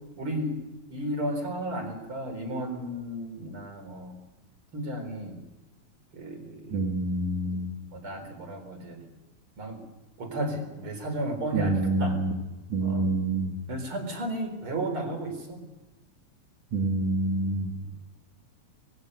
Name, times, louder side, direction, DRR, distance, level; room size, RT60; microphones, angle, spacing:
voice 1, 0.2-0.6 0.9-4.2 4.7-5.4 6.1-6.9 7.9-9.0 9.6-9.8 10.2-12.2 12.8-13.1 13.7-15.7 17.7-18.0, right 1 dB, 45° right, 6 dB, 4.9 m, -33 dB
voice 2, 6.7-7.7 11.5-12.4 12.7-13.6 16.7-17.7, right 2 dB, 75° right, 2 dB, 4.2 m, -27 dB
26.5 x 21.5 x 6.6 m, 1.1 s
omnidirectional pair, 3.4 m